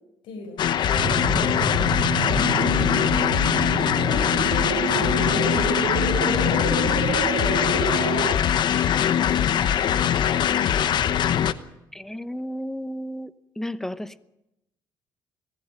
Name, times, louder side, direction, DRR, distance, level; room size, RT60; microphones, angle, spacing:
voice 1, 0.2-1.5 2.5-3.4 4.2-6.2 7.0-7.8 8.1-8.4 9.0-10.7, left 4 dB, 80° left, 4.5 m, -41 dB
sound 1, 0.6-11.5, left 9 dB, 60° left, 1.0 m, -22 dB
sound 2, 0.9-3.9, left 7 dB, 45° left, 1.5 m, -37 dB
sound 3, 0.9-8.3, right 8 dB, 80° right, 2.3 m, -29 dB
voice 2, 2.0-3.6 11.9-14.3, equal, 5° left, 0.8 m, -34 dB
20.5 x 15.0 x 9.0 m
cardioid pair, 110°, 9 cm